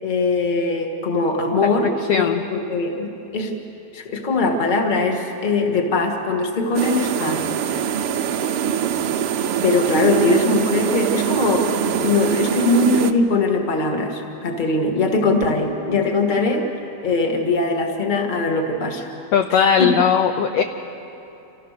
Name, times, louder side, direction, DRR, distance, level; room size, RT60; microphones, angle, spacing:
voice 1, 0.0-3.5 3.9-7.4 9.6-11.7 12.0-16.7 17.0-19.1 19.8-19.9, left 3 dB, 25° left, 3 dB, 1.1 m, -21 dB
voice 2, 2.1-2.4 7.2-7.5 11.9-12.0 19.3-20.6, left 7 dB, 75° left, 6 dB, 1.5 m, -19 dB
sound 1, 6.7-13.1, right 9 dB, 85° right, 1.2 m, -23 dB
28.0 x 15.0 x 6.6 m, 2.8 s
omnidirectional pair, 3.6 m